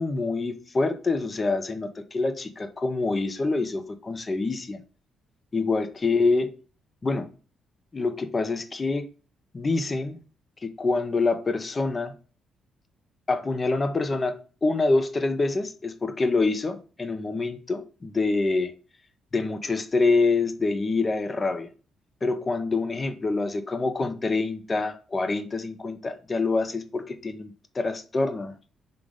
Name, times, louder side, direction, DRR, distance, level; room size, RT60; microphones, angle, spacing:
voice 1, 0.0-4.8 5.5-6.5 7.0-7.3 7.9-9.1 9.5-10.2 10.6-12.1 13.3-18.7 19.3-21.7 22.2-28.5, left 3 dB, 30° left, 0.9 m, -26 dB
5.8 x 3.7 x 5.1 m
cardioid pair, 90°, 0 cm